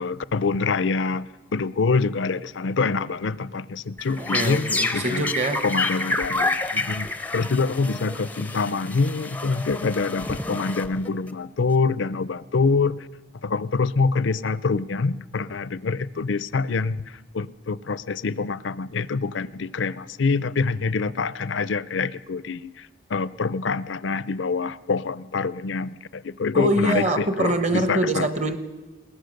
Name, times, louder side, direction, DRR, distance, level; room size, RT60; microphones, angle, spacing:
voice 1, 0.0-5.3 5.6-7.1 7.3-13.0 13.4-28.3, left 4 dB, 70° left, 18 dB, 0.5 m, -25 dB
sound 1, 4.0-11.3, left 2 dB, 10° left, 0.5 m, -29 dB
voice 2, 4.2-5.6 26.5-28.6, right 2 dB, 35° right, 10 dB, 1.2 m, -24 dB
21.0 x 19.0 x 6.6 m, 1.2 s
head